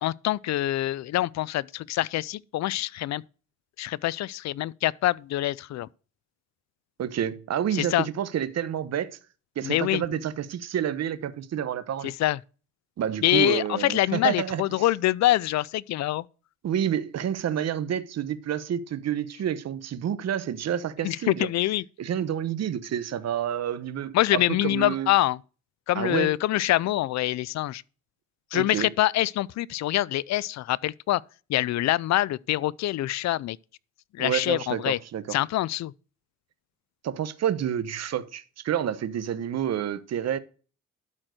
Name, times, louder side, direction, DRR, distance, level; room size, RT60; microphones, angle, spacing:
voice 1, 0.0-3.2 3.8-5.9 7.7-8.1 9.6-10.0 12.0-12.4 13.2-16.2 21.0-21.8 24.1-25.4 25.9-27.8 28.5-31.2 31.5-33.6 34.1-35.0 35.3-35.9, left 15 dB, 65° left, 0.5 m, -25 dB
voice 2, 7.0-9.1 9.6-12.1 13.0-14.9 16.6-21.5 22.0-25.1 25.9-26.3 28.5-28.9 34.2-35.4 37.0-40.4, right 9 dB, 60° right, 1.0 m, -29 dB
12.0 x 4.5 x 6.3 m
cardioid pair, 90°, 30 cm